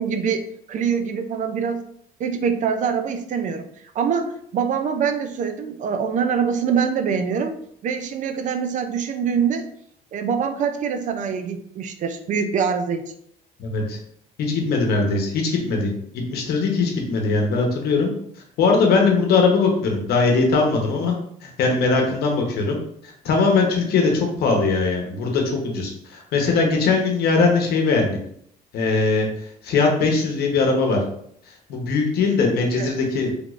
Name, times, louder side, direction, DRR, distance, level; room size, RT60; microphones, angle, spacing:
voice 1, 0.0-1.9 2.2-3.7 4.0-7.6 7.8-9.7 10.1-13.0 32.8-32.9, right 6 dB, 50° right, 8 dB, 0.4 m, -24 dB
voice 2, 13.6-14.0 14.4-18.1 18.6-21.1 21.4-22.8 23.0-28.2 28.7-29.3 29.6-31.0 31.7-33.3, left 4 dB, 70° left, 1 dB, 0.9 m, -20 dB
3.4 x 3.0 x 2.4 m, 0.68 s
cardioid pair, 110°, 17 cm